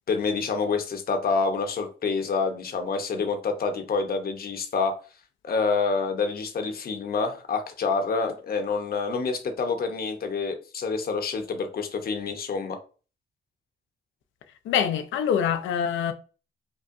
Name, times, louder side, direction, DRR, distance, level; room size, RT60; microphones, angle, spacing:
voice 1, 0.1-5.0 5.4-12.8, left 4 dB, 50° left, 0.9 m, -27 dB
voice 2, 14.6-16.1, left 8 dB, 75° left, 0.6 m, -25 dB
5.4 x 2.2 x 2.5 m
cardioid pair, 90°, 20 cm